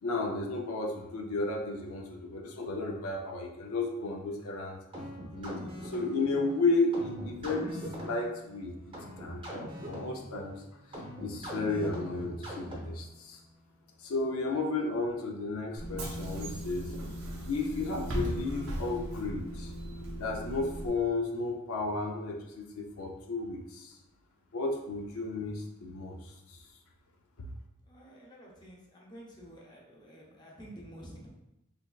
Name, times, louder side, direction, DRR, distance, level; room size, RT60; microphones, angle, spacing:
voice 1, 0.0-4.8 5.3-10.6 10.9-13.4 14.0-16.9 17.5-19.7 20.2-24.0 24.5-26.6, left 3 dB, 80° left, 1 dB, 0.5 m, -33 dB
sound 1, 4.9-13.1, equal, 25° right, 0.7 m, -42 dB
Bus / Engine, 15.8-20.9, right 1 dB, 80° right, 0.7 m, -37 dB
voice 2, 27.9-31.3, right 1 dB, 20° left, -4 dB, 0.7 m, -50 dB
3.4 x 3.2 x 2.3 m, 0.88 s
head